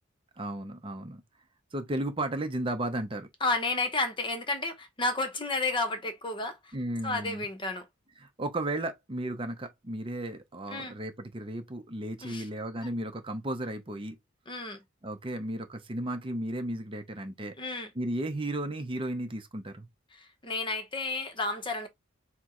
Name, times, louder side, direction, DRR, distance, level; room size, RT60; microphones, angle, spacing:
voice 1, 0.4-1.2 1.7-3.3 6.7-7.5 8.2-14.2 15.0-17.5 17.9-19.9, right 1 dB, 25° right, 0.6 m, -34 dB
voice 2, 3.4-6.8 7.0-7.9 10.7-11.0 12.2-12.5 14.5-14.8 17.6-17.9 20.1-21.9, left 2 dB, 25° left, 0.8 m, -31 dB
4.4 x 2.1 x 3.7 m
head